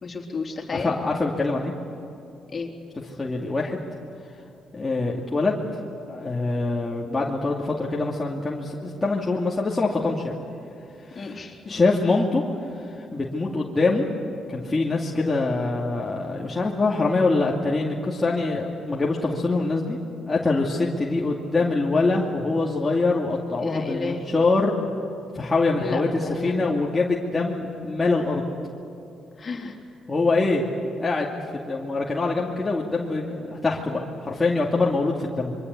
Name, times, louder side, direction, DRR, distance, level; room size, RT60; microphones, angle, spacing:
voice 1, 0.0-0.9 2.5-2.7 11.2-11.6 23.6-24.3 25.8-26.8 29.4-29.8, left 4 dB, 40° left, 2 dB, 3.7 m, -32 dB
voice 2, 0.7-1.7 3.2-3.8 4.7-5.6 6.1-10.4 11.1-11.4 11.7-14.0 14.5-20.0 20.3-24.8 25.3-28.4 30.1-30.6 31.0-35.6, left 3 dB, 20° left, -3 dB, 2.5 m, -24 dB
26.0 x 23.5 x 8.4 m, 2.8 s
cardioid pair, 90°, 0 cm